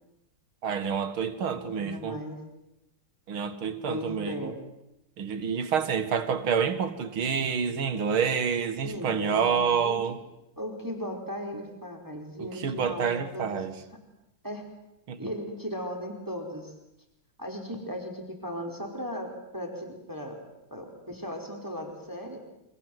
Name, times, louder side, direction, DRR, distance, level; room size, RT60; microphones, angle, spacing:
voice 1, 0.6-2.2 3.3-4.5 5.2-10.2 12.4-13.7 15.1-15.2, right 6 dB, 85° right, 2.7 m, -28 dB
voice 2, 1.5-2.4 3.9-4.6 8.8-10.0 10.6-13.8 14.4-14.6 15.2-16.7 17.4-20.4 20.7-22.4, equal, 10° right, 4.6 m, -37 dB
29.0 x 25.5 x 7.9 m
omnidirectional pair, 2.2 m